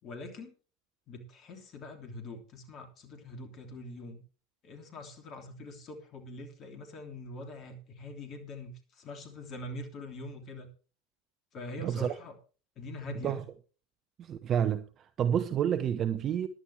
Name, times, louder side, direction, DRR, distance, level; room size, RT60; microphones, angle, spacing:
voice 1, 0.0-0.5 1.1-4.2 4.6-10.7 11.5-12.3 12.8-13.4, left 2 dB, 40° left, 3.1 m, -43 dB
voice 2, 11.8-12.2 13.2-13.4 14.2-16.5, right 9 dB, 35° right, 0.8 m, -29 dB
15.0 x 11.0 x 3.4 m
figure-of-eight pair, 80°, 0 cm